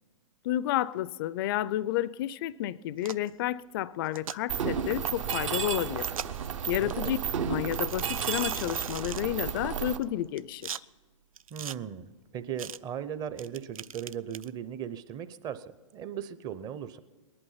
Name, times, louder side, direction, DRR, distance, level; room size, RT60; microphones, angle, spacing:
voice 1, 0.4-6.1 6.7-7.2 7.5-10.8, left 13 dB, 40° left, 0.4 m, -31 dB
sound 1, 3.0-3.3 4.0-4.4 5.3-5.4 6.0-6.5 6.9-7.0 7.7-9.2 10.0-10.8 11.4-11.8 12.6-12.8 13.4-14.5, right 8 dB, 90° right, 0.4 m, -40 dB
Mechanisms, 4.5-10.0, right 8 dB, 65° right, 1.2 m, -32 dB
voice 2, 6.8-7.1 11.5-17.0, right 9 dB, 20° right, 0.6 m, -38 dB
19.5 x 11.5 x 5.6 m
hypercardioid pair, 135°, 17 cm